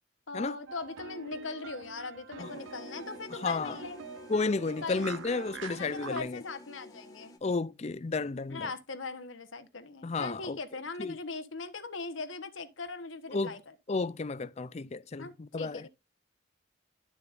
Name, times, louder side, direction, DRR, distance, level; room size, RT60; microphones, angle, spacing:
voice 1, 0.3-4.0 4.8-5.2 5.7-7.4 8.5-13.7 15.2-15.9, left 3 dB, 85° left, 1.3 m, -40 dB
sound 1, 0.7-6.2, right 5 dB, 85° right, 0.6 m, -45 dB
sound 2, 2.4-7.4, left 2 dB, 20° left, 1.4 m, -50 dB
voice 2, 3.3-3.8 4.3-6.4 7.4-8.7 10.0-10.6 11.0-11.2 13.3-13.6 13.9-15.9, left 3 dB, 35° left, 0.4 m, -32 dB
12.0 x 6.8 x 2.6 m
head